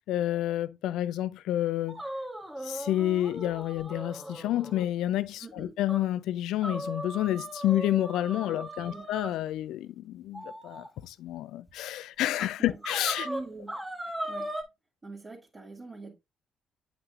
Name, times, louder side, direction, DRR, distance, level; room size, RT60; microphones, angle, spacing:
voice 1, 0.1-2.0 2.6-13.3, left 13 dB, 75° left, 0.4 m, -29 dB
sound 1, 1.9-4.9 5.2-5.3 5.9-6.0 6.6-9.3 10.3-10.9 11.7-11.8 12.4-12.5 12.8-14.6, right 1 dB, 10° right, 1.4 m, -38 dB
voice 2, 5.4-5.8 8.4-9.1 12.6-12.8 13.2-13.8 14.2-14.5 15.0-16.1, right 3 dB, 30° right, 2.0 m, -43 dB
8.1 x 5.9 x 2.4 m
supercardioid pair, 55°, 0 cm